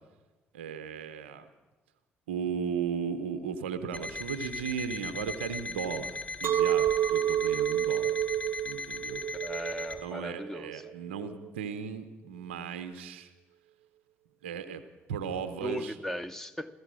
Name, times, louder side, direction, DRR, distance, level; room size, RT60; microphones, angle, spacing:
voice 1, 0.5-1.5 2.3-8.2 8.6-9.2 10.0-13.3 14.4-14.8 15.1-15.9, right 7 dB, 85° right, 10 dB, 0.8 m, -36 dB
Alarm, 3.9-10.0, left 4 dB, 25° left, 3.5 m, -38 dB
Chink clink, 6.4-11.6, right 12 dB, 45° right, 0.4 m, -29 dB
voice 2, 9.3-10.9 15.6-16.7, equal, 5° left, 8 dB, 0.9 m, -37 dB
15.0 x 15.0 x 6.3 m, 1.2 s
hypercardioid pair, 45°, 6 cm